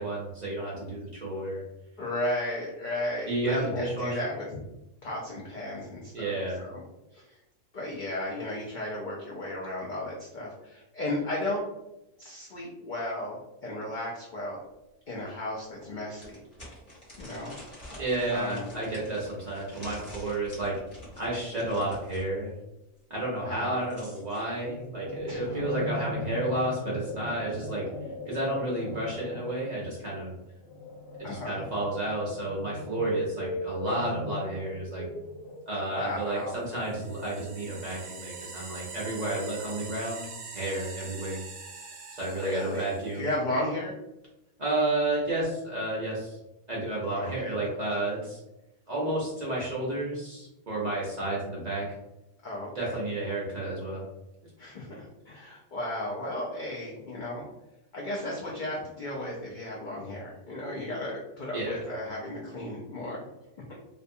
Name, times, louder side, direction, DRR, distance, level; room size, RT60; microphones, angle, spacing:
voice 1, 0.0-1.6 3.3-4.4 6.1-6.6 18.0-20.8 21.2-22.5 23.1-27.8 28.3-30.3 31.2-35.1 35.7-40.3 40.5-41.4 42.1-43.3 44.6-46.4 46.7-48.4 48.9-51.8 52.7-54.0 61.5-61.8, right 2 dB, 45° right, -6 dB, 0.5 m, -31 dB
voice 2, 2.0-4.5 5.0-6.8 7.1-7.4 7.7-11.6 12.2-14.6 15.1-16.4 17.2-17.5 18.3-18.6 23.5-23.8 25.3-25.7 31.2-31.6 35.9-36.6 42.3-43.9 47.2-47.3 52.4-53.0 54.6-57.5 57.9-63.2 63.7-63.8, left 1 dB, 80° left, -4 dB, 0.4 m, -34 dB
sound 1, 14.7-14.8 15.3-15.4 16.2-22.3 23.5-24.4, equal, 25° left, 0.9 m, -47 dB
sound 2, 24.6-36.0, left 1 dB, 50° left, 1.0 m, -37 dB
sound 3, 36.5-43.3, right 4 dB, 65° right, 0.8 m, -44 dB
2.5 x 2.2 x 2.6 m, 0.93 s
omnidirectional pair, 1.4 m